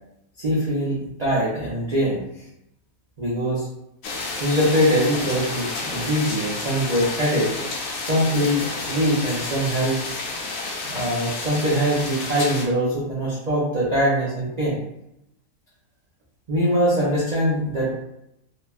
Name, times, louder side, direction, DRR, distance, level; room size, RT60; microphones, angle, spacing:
voice 1, 0.4-2.2 3.2-3.7 4.4-7.5 8.0-10.0 10.8-14.8 16.5-17.9, equal, 55° right, -7 dB, 0.4 m, -22 dB
sound 1, 4.0-12.7, left 3 dB, 70° left, 0.9 m, -30 dB
3.0 x 2.2 x 2.3 m, 0.81 s
omnidirectional pair, 1.6 m